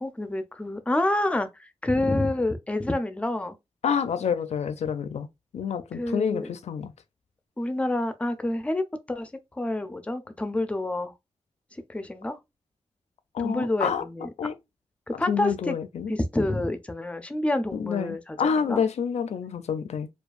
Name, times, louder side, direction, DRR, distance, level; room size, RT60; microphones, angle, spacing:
voice 1, 0.0-3.5 5.9-6.5 7.6-9.3 9.6-11.1 11.9-12.4 13.4-14.3 15.1-15.8 16.1-18.4 18.7-18.8, left 1 dB, 10° left, 0.4 m, -28 dB
voice 2, 3.8-5.3 5.5-6.9 13.3-14.0 14.4-14.5 15.1-16.1 17.7-20.1, left 7 dB, 90° left, 0.5 m, -28 dB
4.5 x 2.3 x 2.4 m
wide cardioid pair, 180°, 11 cm